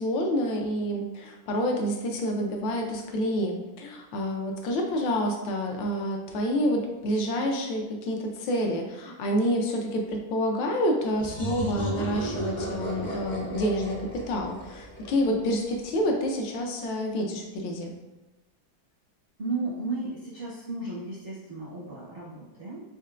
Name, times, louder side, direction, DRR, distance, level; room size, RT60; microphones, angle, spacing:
voice 1, 0.0-17.9, equal, 75° left, 2 dB, 1.3 m, -28 dB
sound 1, 11.2-15.8, right 1 dB, 40° left, 0.6 m, -34 dB
voice 2, 19.4-22.8, right 3 dB, 60° right, -7 dB, 0.6 m, -34 dB
4.3 x 3.7 x 2.4 m, 1.0 s
omnidirectional pair, 2.2 m